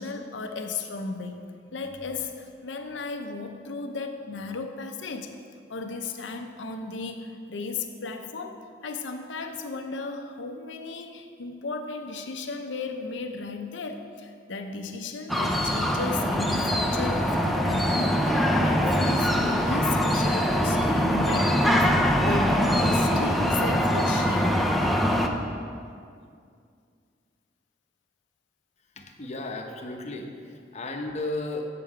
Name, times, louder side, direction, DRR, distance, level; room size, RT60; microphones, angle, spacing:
voice 1, 0.0-5.3 5.7-24.6, left 4 dB, 80° left, 6 dB, 0.7 m, -35 dB
sound 1, 15.3-25.3, equal, ahead, 0.4 m, -23 dB
voice 2, 29.0-30.3 30.7-31.7, left 2 dB, 40° left, 3 dB, 0.7 m, -33 dB
7.2 x 6.8 x 4.8 m, 2.3 s
head